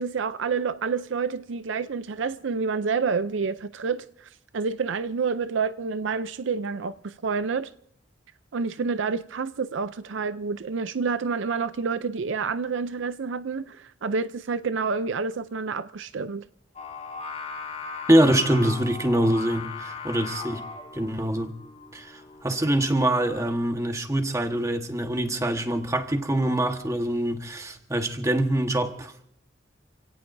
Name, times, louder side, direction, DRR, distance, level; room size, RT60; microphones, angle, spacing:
voice 1, 0.0-7.7 8.5-16.4, right 5 dB, 70° right, 0.5 m, -28 dB
Singing, 16.8-23.5, left 4 dB, 35° left, 4.3 m, -38 dB
voice 2, 18.1-20.6 20.9-21.5 21.9-29.1, right 1 dB, 15° right, 1.3 m, -24 dB
28.5 x 17.5 x 2.6 m
head